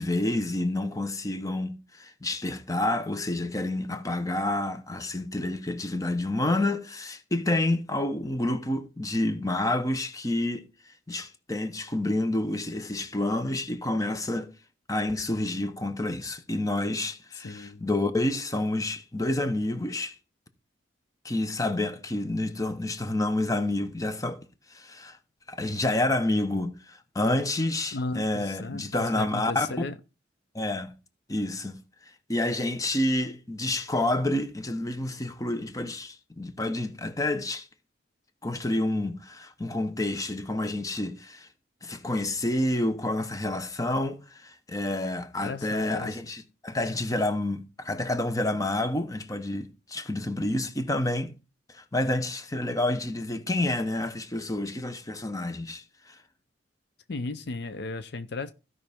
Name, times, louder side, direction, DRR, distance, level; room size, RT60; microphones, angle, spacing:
voice 1, 0.0-10.7 11.1-14.5 14.9-20.2 21.2-24.4 24.7-25.2 25.5-29.7 30.5-30.9 31.3-31.8 32.3-37.7 38.4-41.5 41.8-51.3 51.7-56.2, left 1 dB, 20° left, 0.9 m, -29 dB
voice 2, 17.4-17.8 27.9-29.9 45.4-46.2 57.1-58.5, left 3 dB, 60° left, 0.6 m, -35 dB
15.5 x 5.6 x 3.5 m
head